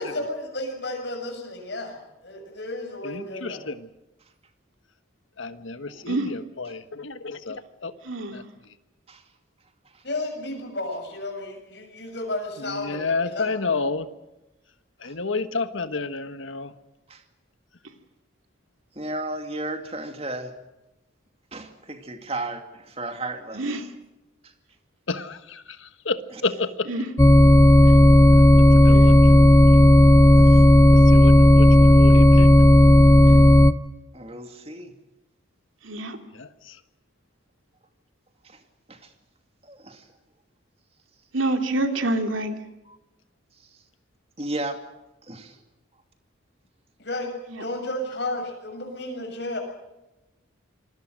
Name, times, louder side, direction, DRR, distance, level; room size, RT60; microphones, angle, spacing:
voice 1, 0.0-3.6 10.0-13.5 47.0-49.6, left 1 dB, 60° left, 7.1 m, -32 dB
voice 2, 3.0-3.9 5.4-7.9 8.3-8.4 12.7-14.1 15.0-16.7 25.1-25.6 26.0-26.9 28.8-29.2 29.7-29.8 31.1-32.5 36.4-36.5, left 3 dB, 80° left, 1.4 m, -30 dB
voice 3, 8.0-8.4 23.5-23.9 26.8-27.1 28.9-29.1 33.3-33.5 35.8-36.2 41.3-42.6 47.5-47.6, right 2 dB, 85° right, 2.8 m, -27 dB
voice 4, 19.0-20.5 21.5-23.6 24.4-24.5 26.3-26.4 30.4-30.6 34.1-34.9 38.4-38.6 38.9-39.1 39.6-40.1 44.4-44.8 45.3-45.6, right 2 dB, 30° right, 2.6 m, -34 dB
sound 1, 27.2-33.7, left 1 dB, 15° left, 0.8 m, -12 dB
26.5 x 22.0 x 6.5 m
head